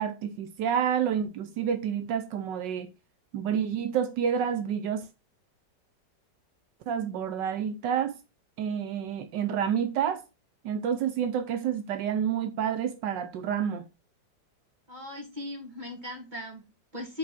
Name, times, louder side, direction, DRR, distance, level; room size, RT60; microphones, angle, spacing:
voice 1, 0.0-2.9 3.3-5.1 6.9-8.1 8.6-10.2 10.6-13.9, right 8 dB, 80° right, 1.4 m, -29 dB
voice 2, 14.9-17.2, left 2 dB, 25° right, 2.8 m, -38 dB
5.1 x 5.0 x 6.1 m
omnidirectional pair, 1.9 m